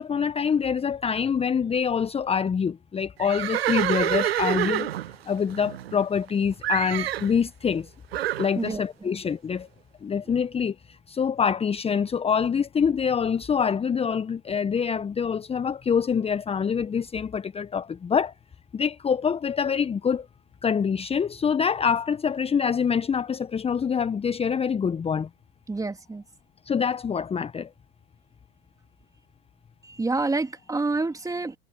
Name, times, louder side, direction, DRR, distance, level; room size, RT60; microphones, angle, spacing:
voice 1, 0.0-4.9 5.3-7.9 8.4-9.7 10.0-18.3 18.7-20.3 20.6-25.3 26.6-27.7, left 6 dB, 20° left, 1.3 m, -25 dB
Livestock farm animals working animals, 3.2-6.3 6.6-7.3 8.1-8.5, right 13 dB, 70° right, 0.7 m, -27 dB
voice 2, 25.7-26.2 29.8-31.5, right 3 dB, 10° right, 3.1 m, -28 dB
figure-of-eight pair, 80°, 32 cm